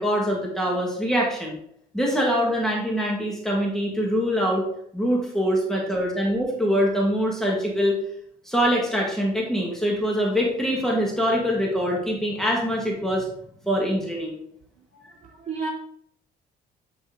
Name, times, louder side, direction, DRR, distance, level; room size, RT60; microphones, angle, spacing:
voice 1, 0.0-1.6 1.9-4.6 4.9-7.9 8.5-13.3 13.6-14.4 15.0-15.1, equal, 5° left, -2 dB, 2.0 m, -24 dB
voice 2, 14.7-15.7, right 4 dB, 45° right, -1 dB, 2.5 m, -34 dB
9.8 x 4.4 x 3.8 m, 0.69 s
cardioid pair, 110°, 17 cm